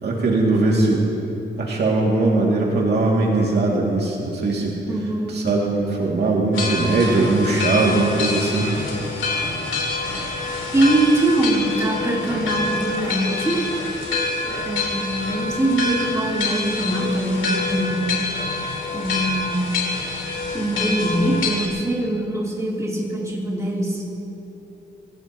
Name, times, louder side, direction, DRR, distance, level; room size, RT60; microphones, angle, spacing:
voice 1, 0.0-1.1 1.6-4.8 5.3-8.7, right 2 dB, 60° right, -3 dB, 2.5 m, -20 dB
voice 2, 4.9-5.5 10.7-13.7 14.4-18.1 18.9-19.7 20.5-24.0, right 1 dB, 15° right, -5 dB, 3.3 m, -23 dB
sound 1, 6.5-21.7, left 3 dB, 80° left, 3.3 m, -26 dB
25.0 x 17.5 x 3.0 m, 3.0 s
cardioid pair, 120°, 19 cm